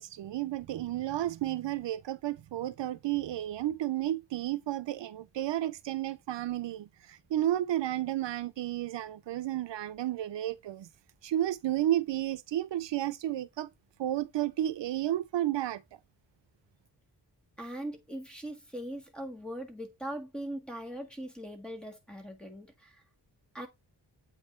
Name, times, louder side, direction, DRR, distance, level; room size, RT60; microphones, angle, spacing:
voice 1, 0.0-10.9 11.2-13.7 14.0-15.8, right 13 dB, 80° right, 0.5 m, -32 dB
voice 2, 17.6-23.0 23.5-23.7, right 1 dB, ahead, 1.5 m, -40 dB
8.0 x 3.1 x 4.3 m
wide cardioid pair, 140°, 42 cm